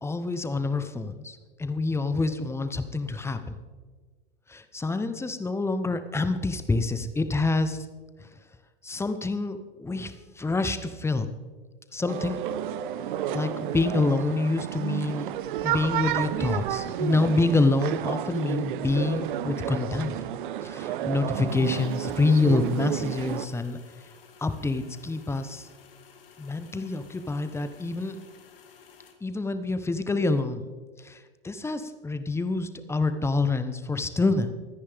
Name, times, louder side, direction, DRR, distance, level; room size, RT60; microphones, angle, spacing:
voice 1, 0.0-3.6 4.5-7.8 8.8-11.3 11.9-12.4 13.3-15.3 15.6-20.2 20.6-23.8 24.4-25.7 26.4-28.2 29.2-30.6 31.0-34.5, left 3 dB, 10° left, 10 dB, 1.0 m, -27 dB
sound 1, 12.0-16.7 17.0-17.1, right 4 dB, 40° right, 2.3 m, -42 dB
sound 2, 12.1-23.5, right 11 dB, 60° right, 0.8 m, -31 dB
sound 3, 21.5-29.1, left 7 dB, 70° left, 2.3 m, -54 dB
24.5 x 9.9 x 3.6 m, 1.4 s
figure-of-eight pair, 90°, 29 cm